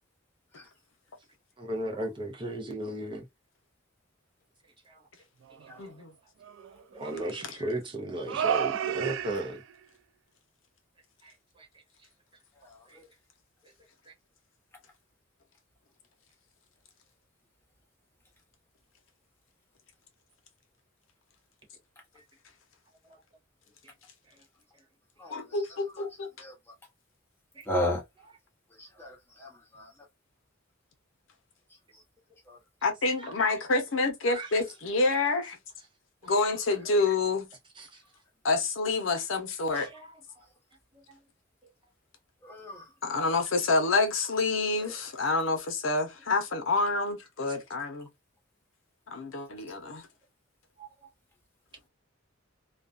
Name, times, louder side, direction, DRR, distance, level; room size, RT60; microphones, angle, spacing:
voice 1, 1.6-3.2 4.9-5.0 6.9-9.6 11.2-11.7 12.9-13.0 14.1-14.2 27.5-27.7 33.2-33.3 34.3-34.5 37.8-37.9 39.8-40.1 41.1-41.2 43.2-43.4 50.8-50.9, right 1 dB, 25° right, 0.6 m, -36 dB
sound 1, 5.5-5.8 6.4-7.5 8.3-9.7, right 8 dB, 65° right, 0.3 m, -32 dB
voice 2, 5.8-6.1 7.5-7.6 25.3-26.3 32.8-35.6 36.2-37.5 38.4-39.9 43.0-48.1 49.1-50.1, left 3 dB, 70° left, 0.7 m, -28 dB
voice 3, 12.6-13.1 25.2-25.6 26.4-26.5 27.7-28.0 28.8-29.9 32.5-32.6 39.7-39.8 42.4-42.8, left 1 dB, 10° left, 1.0 m, -34 dB
2.4 x 2.2 x 2.4 m
head